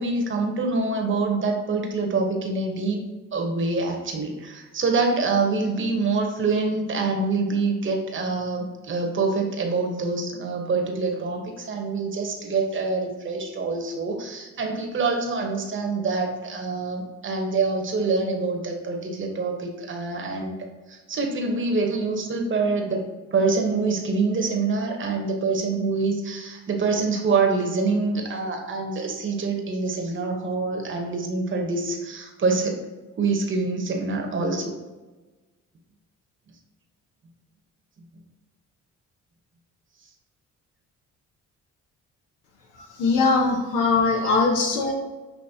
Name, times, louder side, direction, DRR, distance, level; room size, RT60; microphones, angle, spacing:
voice 1, 0.0-3.0 3.3-20.6 20.9-32.8 33.2-34.7 44.2-44.4 44.8-44.9, right 3 dB, 40° right, 2 dB, 0.9 m, -25 dB
voice 2, 43.0-44.9, left 4 dB, 85° left, -1 dB, 0.9 m, -21 dB
6.0 x 2.9 x 2.7 m, 1.2 s
cardioid pair, 90°, 30 cm